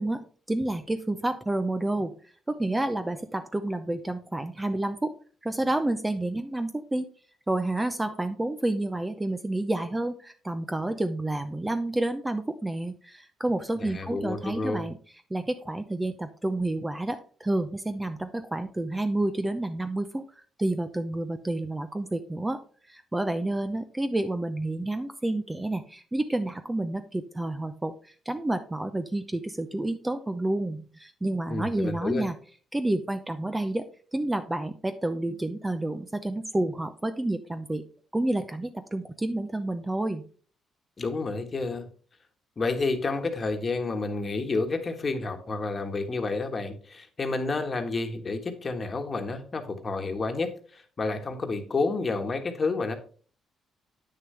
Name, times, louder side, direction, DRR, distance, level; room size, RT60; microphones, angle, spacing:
voice 1, 0.0-2.1 2.5-5.1 5.4-7.1 7.5-15.0 15.3-20.2 20.6-22.6 22.9-32.4 32.7-33.8 34.1-37.8 38.1-40.2, right 1 dB, 15° right, 9 dB, 0.6 m, -29 dB
voice 2, 13.8-14.9 31.5-32.2 41.0-41.9 42.6-52.9, left 3 dB, 35° left, 6 dB, 1.4 m, -30 dB
8.7 x 6.5 x 3.3 m, 0.42 s
cardioid pair, 90°, 0 cm